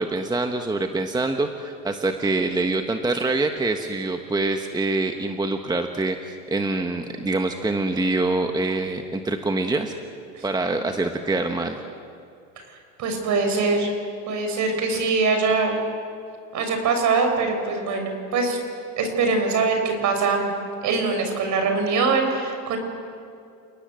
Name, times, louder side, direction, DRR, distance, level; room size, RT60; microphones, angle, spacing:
voice 1, 0.0-9.9 10.4-11.8, right 2 dB, 10° right, 5 dB, 1.4 m, -25 dB
voice 2, 13.0-13.9 14.3-15.7 16.5-18.6 19.0-20.5 20.8-22.8, right 4 dB, 50° right, 5 dB, 6.3 m, -23 dB
30.0 x 18.5 x 7.9 m, 2.4 s
supercardioid pair, 105°, 38 cm